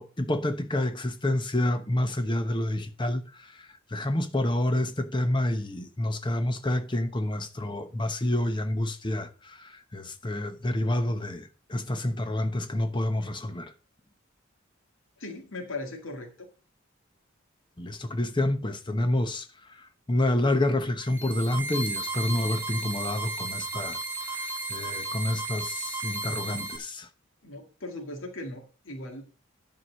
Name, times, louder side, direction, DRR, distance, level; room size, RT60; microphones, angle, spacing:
voice 1, 0.0-3.2 3.9-13.7 17.8-19.4 20.1-24.0 24.3-24.4 24.7-27.1, left 1 dB, 25° left, 1.0 m, -28 dB
voice 2, 15.2-16.5 27.4-29.2, left 2 dB, 85° left, 2.2 m, -38 dB
sound 1, 21.0-26.8, right 3 dB, 10° right, 1.7 m, -34 dB
11.0 x 4.7 x 6.2 m
head